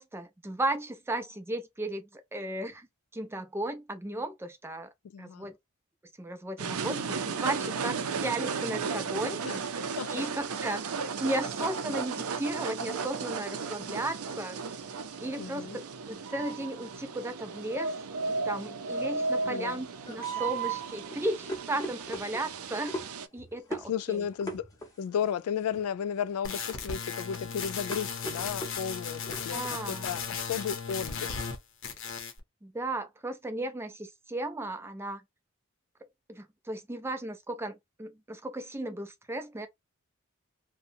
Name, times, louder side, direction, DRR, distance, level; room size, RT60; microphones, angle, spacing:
voice 1, 0.0-2.9 3.1-4.9 5.2-5.5 6.2-9.4 10.1-10.9 11.2-14.6 15.2-18.0 18.4-22.9 23.3-24.2 29.5-30.1 32.6-35.2 36.3-39.7, right 1 dB, 10° right, 0.4 m, -35 dB
voice 2, 5.0-5.5 9.4-10.3 15.4-15.8 19.4-19.8 23.8-24.7 25.0-31.4, left 8 dB, 80° left, 0.3 m, -34 dB
sound 1, 6.6-23.3, right 5 dB, 80° right, 0.5 m, -34 dB
sound 2, 19.4-29.8, equal, 15° left, 0.8 m, -42 dB
sound 3, 26.4-31.6 31.8-32.4, left 6 dB, 60° left, 0.7 m, -36 dB
2.8 x 2.2 x 2.5 m
head